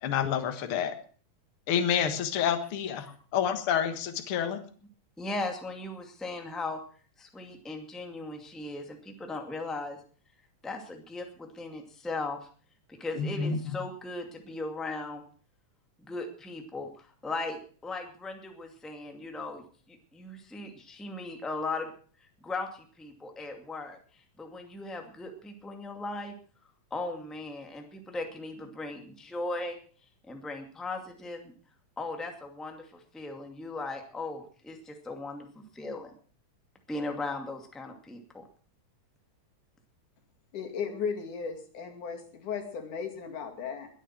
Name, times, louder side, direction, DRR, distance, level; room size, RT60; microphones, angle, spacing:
voice 1, 0.0-0.9 1.7-3.1 3.3-4.6 13.2-13.8, left 8 dB, 50° left, 8 dB, 2.1 m, -28 dB
voice 2, 5.2-6.8 7.2-10.0 10.6-12.4 12.9-15.2 16.0-21.9 22.4-24.0 24.4-26.3 26.9-29.8 30.3-31.5 32.0-36.1 36.9-38.4, left 2 dB, ahead, 4 dB, 1.8 m, -38 dB
voice 3, 40.5-43.9, left 6 dB, 85° left, 3 dB, 4.0 m, -36 dB
21.0 x 9.2 x 6.0 m, 0.43 s
omnidirectional pair, 3.5 m